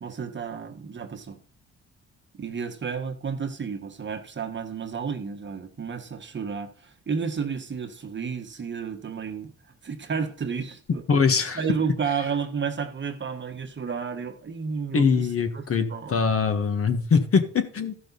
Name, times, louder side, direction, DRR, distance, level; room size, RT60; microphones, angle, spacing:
voice 1, 0.0-1.4 2.3-9.5 9.8-11.0 11.5-15.3 15.5-15.6 15.9-16.2, right 6 dB, 40° right, 1.5 m, -31 dB
voice 2, 11.1-11.6 14.9-17.9, left 5 dB, 50° left, 1.6 m, -22 dB
13.5 x 6.0 x 4.1 m
cardioid pair, 90°, 30 cm